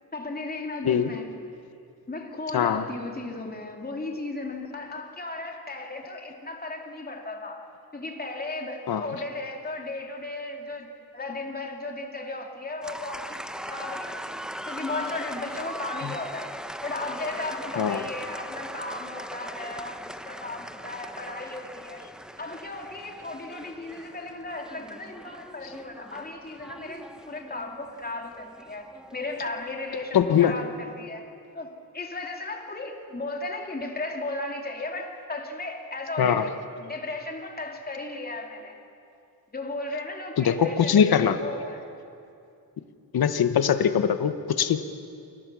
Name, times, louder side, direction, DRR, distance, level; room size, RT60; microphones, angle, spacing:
voice 1, 0.1-1.3 2.1-7.6 7.9-13.4 13.7-14.4 14.7-16.5 16.8-22.0 22.4-31.3 31.5-36.5 36.8-38.7 39.5-41.9, left 2 dB, 25° left, 2 dB, 2.8 m, -35 dB
voice 2, 2.5-2.8 8.9-9.1 16.0-16.1 17.8-18.0 30.1-30.6 36.2-36.4 40.4-41.4 43.1-44.8, left 8 dB, 75° left, 10 dB, 1.1 m, -22 dB
sound 1, 12.8-30.5, equal, ahead, 0.8 m, -40 dB
28.5 x 22.5 x 6.2 m, 2.5 s
wide cardioid pair, 120°, 37 cm